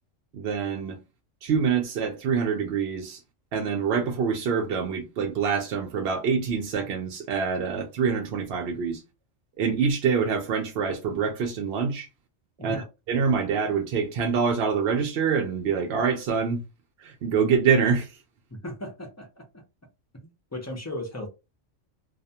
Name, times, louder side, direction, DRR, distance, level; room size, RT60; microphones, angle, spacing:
voice 1, 0.3-1.0 1.4-3.2 3.5-9.0 9.6-12.1 12.6-16.6 17.0-18.1, right 6 dB, 65° right, 0.7 m, -25 dB
voice 2, 18.5-19.6 20.1-21.3, left 1 dB, 25° left, 0.4 m, -37 dB
2.3 x 2.2 x 2.7 m
omnidirectional pair, 1.3 m